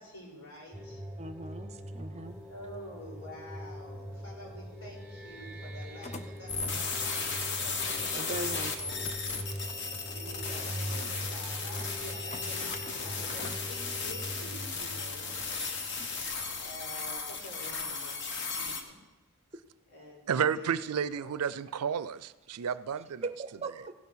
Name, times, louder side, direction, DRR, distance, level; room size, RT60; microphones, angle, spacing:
voice 1, 0.0-1.0 2.5-9.0 10.1-15.3 16.6-18.9 19.9-21.4, left 1 dB, 75° left, 4.5 m, -48 dB
sound 1, 0.7-16.2, equal, 5° right, 1.1 m, -42 dB
voice 2, 1.2-2.4 8.1-9.1 23.2-23.9, right 3 dB, 30° right, 0.5 m, -39 dB
sound 2, 2.2-17.2, left 3 dB, 30° left, 0.6 m, -51 dB
sound 3, 6.5-18.8, left 4 dB, 50° left, 1.1 m, -35 dB
voice 3, 20.3-23.3, right 7 dB, 90° right, 0.4 m, -31 dB
16.0 x 5.8 x 6.3 m
head